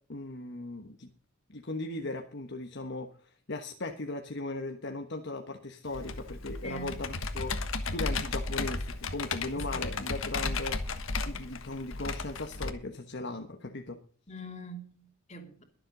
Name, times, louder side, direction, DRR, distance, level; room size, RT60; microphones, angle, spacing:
voice 1, 0.1-1.1 1.5-3.1 3.5-7.5 7.9-11.0 11.2-14.0, left 2 dB, 55° left, 1.3 m, -38 dB
Computer keyboard, 5.9-12.7, left 3 dB, 80° left, 1.5 m, -34 dB
voice 2, 6.6-7.0 9.5-9.8 14.3-15.6, right 1 dB, 35° left, 2.8 m, -43 dB
22.5 x 7.7 x 3.9 m
head